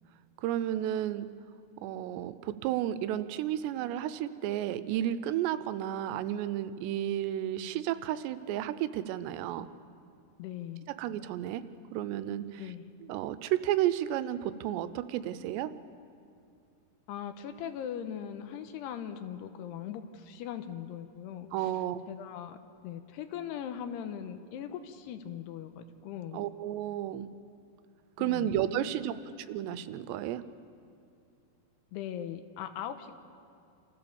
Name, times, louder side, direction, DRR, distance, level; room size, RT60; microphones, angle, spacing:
voice 1, 0.4-1.3 1.8-9.7 11.0-11.6 11.9-12.7 13.1-15.7 21.5-22.0 26.3-27.3 28.2-29.2 29.5-30.4, right 12 dB, 90° right, 13 dB, 2.9 m, -32 dB
voice 2, 10.4-10.9 12.6-12.9 17.1-21.7 22.1-26.4 28.2-29.2 31.9-33.2, left 9 dB, 80° left, 8 dB, 2.9 m, -40 dB
27.5 x 15.0 x 7.1 m, 2.4 s
omnidirectional pair, 4.9 m